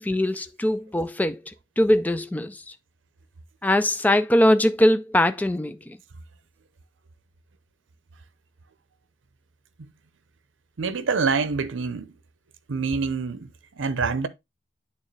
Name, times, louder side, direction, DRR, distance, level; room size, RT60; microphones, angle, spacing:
voice 1, 0.0-1.4 1.8-2.6 3.6-5.8, left 1 dB, 10° left, 0.3 m, -21 dB
voice 2, 10.8-12.1 12.7-13.5 13.8-14.3, right 4 dB, 85° right, 0.6 m, -25 dB
8.9 x 3.6 x 3.2 m
head